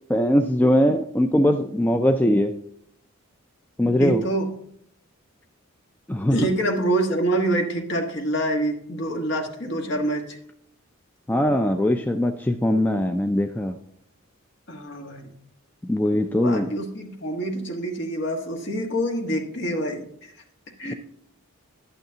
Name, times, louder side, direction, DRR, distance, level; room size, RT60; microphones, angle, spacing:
voice 1, 0.1-2.5 3.8-4.2 6.1-6.4 11.3-13.7 15.9-16.7 20.9-21.0, left 1 dB, 10° left, 5 dB, 0.3 m, -21 dB
voice 2, 3.8-4.5 6.3-10.4 14.7-15.3 16.4-20.3 20.8-20.9, right 1 dB, 55° left, 2 dB, 1.4 m, -26 dB
11.0 x 9.1 x 2.8 m, 0.69 s
head